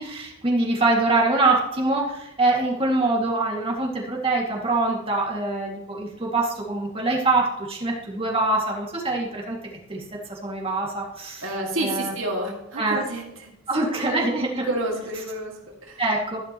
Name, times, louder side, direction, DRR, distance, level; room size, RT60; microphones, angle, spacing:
voice 1, 0.0-9.6 9.9-11.5 11.8-12.1 12.8-13.0 13.7-14.7 16.0-16.4, right 2 dB, 30° right, -3 dB, 2.3 m, -24 dB
voice 2, 11.4-13.5 14.0-16.0, right 1 dB, 85° right, -1 dB, 2.3 m, -30 dB
13.0 x 11.0 x 3.1 m, 0.88 s
head